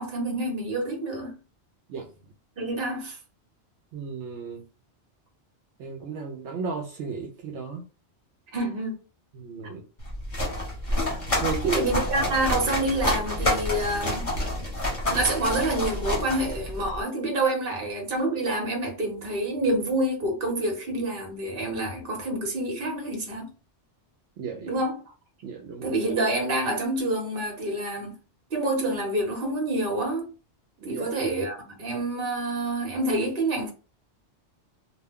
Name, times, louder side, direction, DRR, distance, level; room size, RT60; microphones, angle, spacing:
voice 1, 0.0-1.3 2.6-3.2 8.5-9.0 11.7-14.3 15.1-23.5 24.7-25.0 25.8-28.1 28.5-30.3 30.8-33.7, right 1 dB, 55° right, 1.1 m, -27 dB
voice 2, 3.9-4.6 5.8-7.8 9.3-9.8 11.3-11.9 24.4-24.7 25.4-25.9 30.8-31.1, right 5 dB, 75° right, 0.8 m, -33 dB
sound 1, 10.0-17.0, left 1 dB, 30° left, 1.1 m, -28 dB
2.3 x 2.2 x 3.5 m
omnidirectional pair, 1.2 m